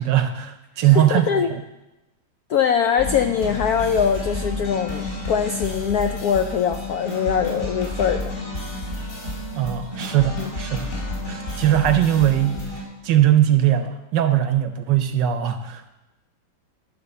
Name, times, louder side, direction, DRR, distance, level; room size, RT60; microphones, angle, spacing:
voice 1, 0.0-1.3 9.6-10.9 11.3-12.6 13.0-15.9, right 11 dB, 70° right, 9 dB, 1.2 m, -20 dB
voice 2, 0.8-1.5 2.5-8.3 10.4-10.5, left 7 dB, 75° left, 7 dB, 0.8 m, -22 dB
sound 1, 3.0-12.8, left 2 dB, 40° left, 3.7 m, -31 dB
13.0 x 5.3 x 6.8 m, 0.99 s
omnidirectional pair, 2.2 m